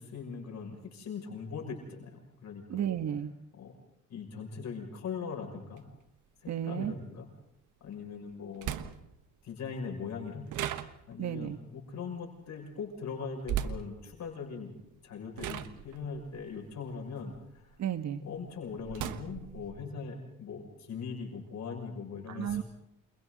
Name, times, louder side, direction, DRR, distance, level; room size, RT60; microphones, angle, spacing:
voice 1, 0.0-2.8 3.5-3.7 4.1-5.8 6.4-7.3 7.8-8.7 9.4-10.5 11.1-14.7 15.0-17.7 18.2-22.6, left 5 dB, 65° left, 1 dB, 6.4 m, -40 dB
voice 2, 2.7-3.3 6.5-6.9 11.2-11.6 17.8-18.2 22.3-22.6, right 10 dB, 65° right, 9 dB, 1.4 m, -33 dB
sound 1, 5.8-5.9 7.9-8.0 8.6-9.2 10.5-11.3 13.4-13.9 14.8-15.0 15.4-17.8 18.2-19.7, right 10 dB, 85° right, 1.4 m, -37 dB
29.5 x 28.0 x 4.0 m, 0.78 s
cardioid pair, 90°, 30 cm